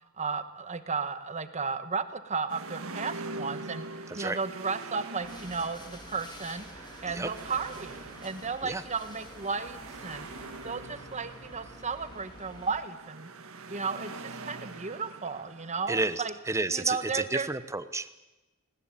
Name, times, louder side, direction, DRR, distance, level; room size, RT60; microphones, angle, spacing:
voice 1, 0.2-13.3 13.7-16.3 16.7-17.5, right 5 dB, 35° right, 10 dB, 1.4 m, -34 dB
sound 1, 2.5-16.2, right 3 dB, 70° right, 1.8 m, -44 dB
sound 2, 5.2-12.8, left 1 dB, 20° left, 3.6 m, -49 dB
voice 2, 15.9-18.1, right 2 dB, 15° right, 13 dB, 0.9 m, -31 dB
20.0 x 19.5 x 9.1 m, 1.1 s
head